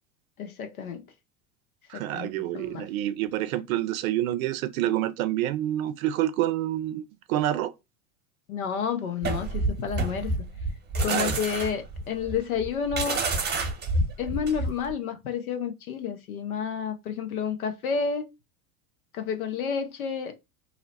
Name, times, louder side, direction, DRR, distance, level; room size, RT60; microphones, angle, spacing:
voice 1, 0.4-1.0 1.9-2.9 8.5-10.3 11.0-13.2 14.2-18.3 19.1-20.4, left 6 dB, 90° left, 0.8 m, -30 dB
voice 2, 1.9-7.0 7.3-7.7 11.1-11.4, right 13 dB, 75° right, 0.5 m, -27 dB
sound 1, 9.2-14.9, right 2 dB, 25° right, 0.9 m, -28 dB
2.8 x 2.0 x 4.0 m
hypercardioid pair, 90°, 42 cm